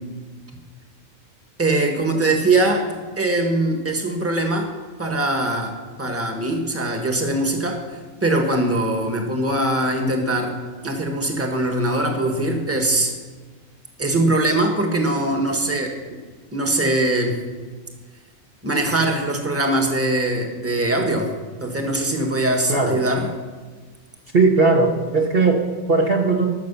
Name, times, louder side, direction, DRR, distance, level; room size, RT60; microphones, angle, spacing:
voice 1, 1.6-4.7 5.0-7.8 8.2-10.6 10.8-13.1 14.0-16.2 16.5-17.4 18.6-21.3 21.6-23.3, right 2 dB, 10° right, 3 dB, 1.5 m, -22 dB
voice 2, 22.7-23.0 24.3-26.5, right 3 dB, 45° right, 0 dB, 1.2 m, -18 dB
14.5 x 6.6 x 6.8 m, 1.4 s
omnidirectional pair, 1.4 m